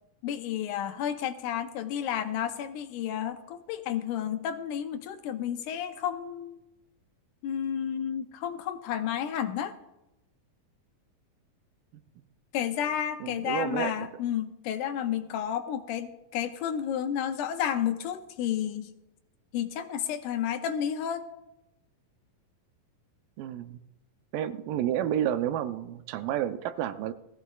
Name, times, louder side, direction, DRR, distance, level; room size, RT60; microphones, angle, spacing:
voice 1, 0.2-6.6 7.4-9.7 12.5-18.9 19.5-21.3, left 9 dB, 80° left, 8 dB, 2.0 m, -31 dB
voice 2, 13.2-14.1 23.4-23.8 24.3-27.1, right 11 dB, 80° right, 11 dB, 2.3 m, -30 dB
18.5 x 14.0 x 2.3 m, 0.92 s
omnidirectional pair, 3.9 m